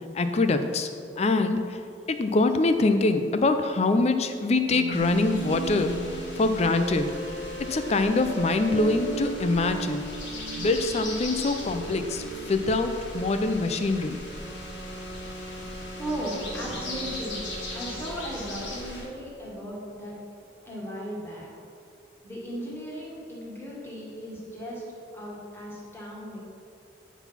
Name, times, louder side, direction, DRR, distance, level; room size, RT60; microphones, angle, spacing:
voice 1, 0.1-0.9 1.2-1.8 2.1-7.1 7.7-10.1 10.6-14.2, left 3 dB, 35° left, 8 dB, 0.4 m, -24 dB
sound 1, 4.7-13.7, right 3 dB, 80° right, 0.8 m, -37 dB
sound 2, 4.9-19.0, left 1 dB, 75° left, 1.8 m, -39 dB
sound 3, 14.2-18.4, equal, 30° right, 0.8 m, -42 dB
voice 2, 16.0-17.4 17.7-20.2 20.6-21.5 22.2-24.8 25.1-26.4, equal, 15° left, -5 dB, 1.7 m, -36 dB
9.0 x 4.0 x 5.7 m, 2.5 s
head